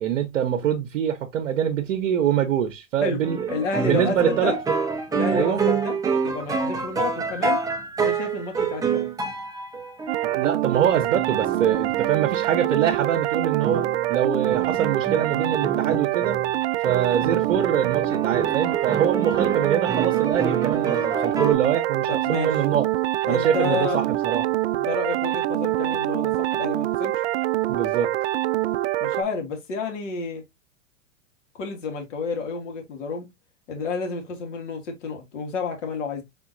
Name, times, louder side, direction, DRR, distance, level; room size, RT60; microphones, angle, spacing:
voice 1, 0.0-3.5 3.9-4.5 5.3-5.6 10.3-16.4 16.8-22.8 23.3-24.5 27.7-28.1, right 9 dB, 75° right, 0.9 m, -24 dB
sound 1, 3.2-13.0 13.6-16.5 16.9-21.5, right 5 dB, 10° right, 0.6 m, -28 dB
voice 2, 3.5-4.6 5.1-7.6 8.0-9.1 22.1-22.6 23.2-24.0 24.7-27.2 29.0-30.4 31.6-33.3 33.7-36.2, left 4 dB, 70° left, 2.2 m, -30 dB
sound 2, 10.1-29.2, right 15 dB, 60° right, 0.5 m, -25 dB
4.3 x 3.7 x 2.5 m
hypercardioid pair, 120°, 38 cm